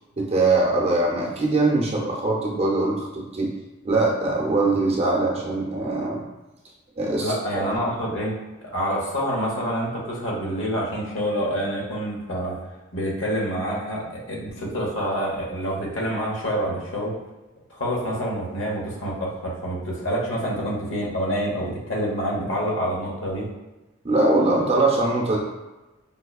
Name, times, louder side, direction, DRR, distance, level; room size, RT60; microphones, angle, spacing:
voice 1, 0.2-3.5 3.8-6.2 7.0-7.3 24.0-25.4, right 2 dB, 30° right, -2 dB, 0.7 m, -22 dB
voice 2, 7.2-8.3 8.7-12.6 12.9-17.1 17.7-23.5, equal, 70° left, -3 dB, 1.0 m, -27 dB
5.3 x 2.2 x 2.3 m, 1.1 s
head